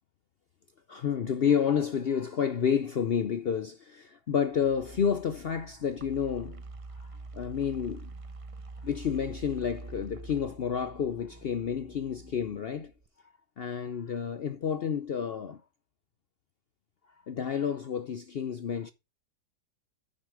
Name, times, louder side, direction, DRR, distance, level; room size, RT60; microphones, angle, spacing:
voice 1, 0.9-6.6 7.0-7.1 7.3-8.1 8.8-12.9 13.6-15.6 17.3-18.9, left 7 dB, 70° left, 0.5 m, -30 dB
sound 1, 4.5-13.1, right 3 dB, 40° right, 0.5 m, -46 dB
9.5 x 7.0 x 4.8 m
omnidirectional pair, 1.8 m